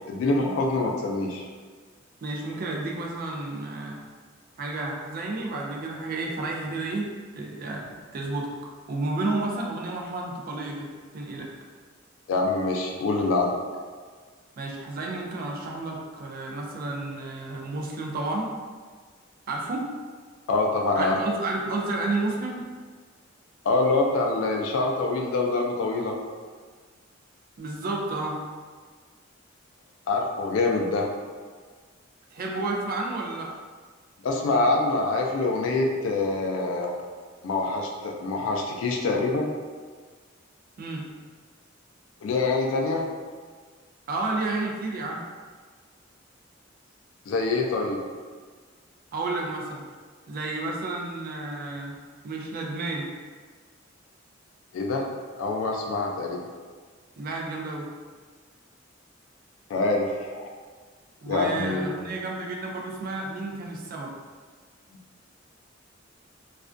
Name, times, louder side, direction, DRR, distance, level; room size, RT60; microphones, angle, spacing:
voice 1, 0.1-1.5 12.3-13.6 20.5-21.2 23.6-26.2 30.1-31.1 34.2-37.0 37.4-39.5 42.2-43.1 47.3-48.0 54.7-55.1 55.4-56.4 59.7-60.5 61.3-62.0, left 3 dB, 75° left, 1 dB, 0.3 m, -25 dB
voice 2, 2.2-4.0 4.6-7.8 8.1-11.5 14.6-18.5 19.5-19.9 20.9-22.7 27.6-28.4 32.3-33.5 40.8-41.1 44.1-45.2 49.1-49.8 50.3-52.0 52.2-53.1 57.2-57.9 61.2-64.1, right 2 dB, 45° right, 0 dB, 0.4 m, -31 dB
2.4 x 2.1 x 2.4 m, 1.5 s
head